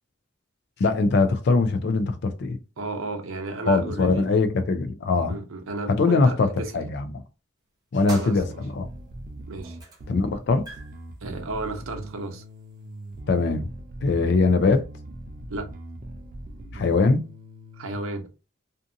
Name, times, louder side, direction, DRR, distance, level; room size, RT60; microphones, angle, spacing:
voice 1, 0.8-2.6 3.7-5.4 5.9-7.2 7.9-8.9 10.1-10.7 13.3-13.7 14.0-14.8 16.7-17.2, left 3 dB, 55° left, 0.4 m, -22 dB
voice 2, 2.8-4.3 5.3-6.8 8.1-8.6 9.5-9.8 11.2-12.4 15.5-15.7 17.8-18.3, right 3 dB, 90° right, 0.6 m, -33 dB
sound 1, 8.1-9.1 9.6-10.1 10.4-13.2, right 3 dB, 20° right, 0.7 m, -44 dB
Bass guitar, 8.4-18.0, right 1 dB, 40° right, 0.3 m, -41 dB
2.5 x 2.5 x 2.5 m
head